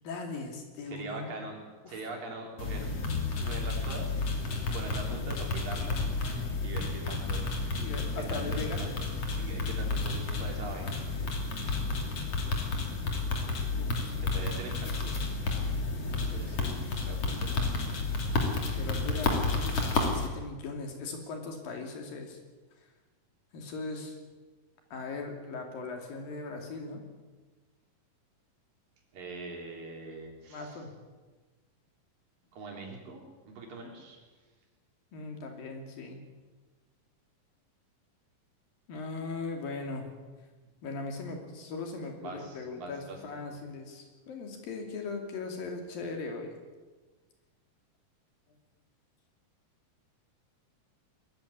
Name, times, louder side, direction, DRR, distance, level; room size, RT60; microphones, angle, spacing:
voice 1, 0.0-1.3 1.8-2.0 7.7-8.9 13.8-14.2 18.5-22.4 23.5-24.2 24.9-27.0 30.5-30.9 35.1-36.2 38.9-40.1 40.8-46.5, left 3 dB, 80° left, 3 dB, 4.6 m, -39 dB
voice 2, 0.9-1.6 1.9-2.9 3.4-4.3 4.7-7.6 8.2-8.9 9.4-11.0 14.2-15.2 16.3-17.8 29.1-30.8 32.5-34.2 42.2-43.4, right 3 dB, 75° right, 1 dB, 5.3 m, -42 dB
sound 1, 2.6-20.3, left 3 dB, 45° left, 3.6 m, -31 dB
21.5 x 14.5 x 9.8 m, 1.3 s
omnidirectional pair, 4.0 m